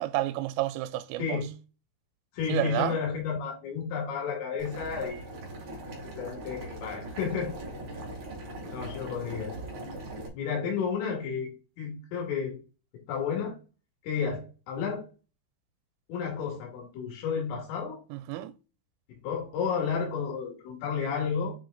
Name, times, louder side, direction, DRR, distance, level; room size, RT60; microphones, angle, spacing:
voice 1, 0.0-1.5 2.5-3.0 18.1-18.5, right 15 dB, 85° right, 3.2 m, -30 dB
voice 2, 1.2-1.5 2.3-5.2 6.2-7.5 8.7-9.5 10.3-12.6 13.1-13.6 14.0-15.1 16.1-18.0 19.2-21.5, left 6 dB, 85° left, 4.7 m, -32 dB
Boiling, 4.6-10.3, right 1 dB, 70° right, 1.2 m, -40 dB
8.5 x 3.0 x 3.8 m
omnidirectional pair, 5.8 m